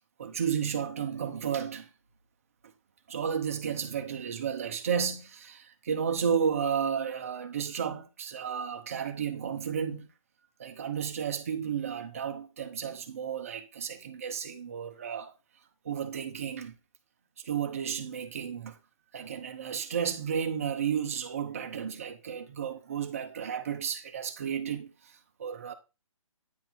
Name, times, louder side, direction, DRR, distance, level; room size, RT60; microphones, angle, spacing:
voice 1, 0.2-1.9 3.1-10.1 10.6-15.3 15.8-16.7 17.4-18.8 19.1-25.7, right 7 dB, 25° right, 0.8 m, -32 dB
9.2 x 3.9 x 4.6 m
hypercardioid pair, 175°, 17 cm